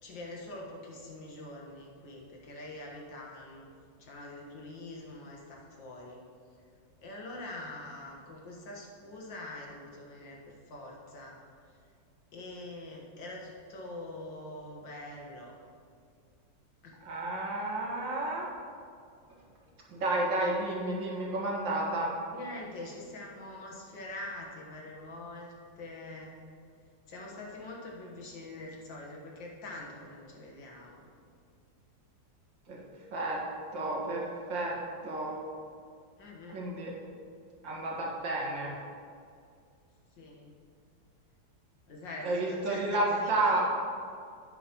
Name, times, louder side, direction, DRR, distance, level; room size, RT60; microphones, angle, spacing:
voice 1, 0.0-3.6 4.0-6.2 7.0-11.4 12.3-15.5 16.8-17.0 22.3-26.4 27.1-31.0 36.2-36.6 40.2-40.5 41.9-43.6, left 2 dB, 80° left, -2 dB, 2.2 m, -44 dB
voice 2, 17.0-18.5 19.9-22.1 32.7-32.8 33.1-33.4 33.7-34.8 35.0-35.4 36.5-36.9 37.6-38.7 42.2-43.6, right 2 dB, 90° right, -3 dB, 2.4 m, -31 dB
11.0 x 9.1 x 3.1 m, 2.3 s
omnidirectional pair, 2.0 m